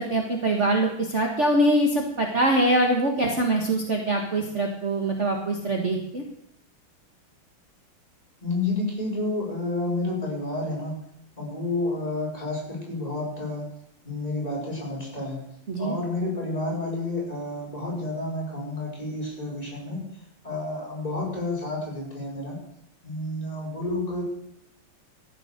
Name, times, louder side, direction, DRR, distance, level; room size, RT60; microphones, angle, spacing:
voice 1, 0.0-6.2 15.7-16.0, right 1 dB, 35° right, 2 dB, 1.9 m, -23 dB
voice 2, 8.4-11.0 11.4-13.7 14.0-15.4 15.8-20.1 20.4-22.6 23.0-24.2, left 2 dB, 15° left, -4 dB, 6.2 m, -30 dB
14.5 x 9.4 x 6.6 m, 0.77 s
omnidirectional pair, 2.4 m